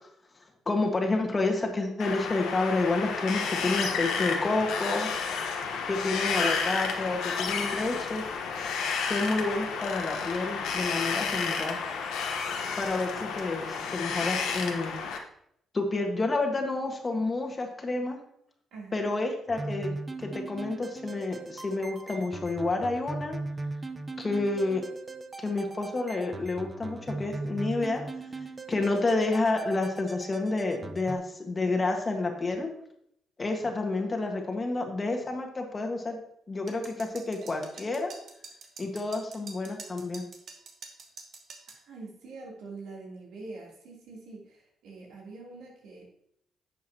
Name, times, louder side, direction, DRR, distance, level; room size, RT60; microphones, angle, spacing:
voice 1, 0.6-5.1 5.9-8.2 9.1-11.8 12.8-14.9 15.7-18.2 18.9-19.9 20.2-23.4 24.2-24.8 25.4-28.0 28.7-32.7 33.4-36.2 36.5-38.1 38.8-40.2, left 3 dB, 30° left, 3 dB, 1.6 m, -29 dB
Wind, 2.0-15.2, left 5 dB, 85° left, 1.1 m, -31 dB
voice 2, 18.7-19.1 41.7-46.0, right 3 dB, 85° right, -3 dB, 3.2 m, -44 dB
sound 1, 19.5-31.2, right 3 dB, 25° right, 0.7 m, -39 dB
sound 2, 36.7-41.8, right 4 dB, 60° right, 1.5 m, -46 dB
10.5 x 7.3 x 2.9 m, 0.72 s
cardioid pair, 90°, 0 cm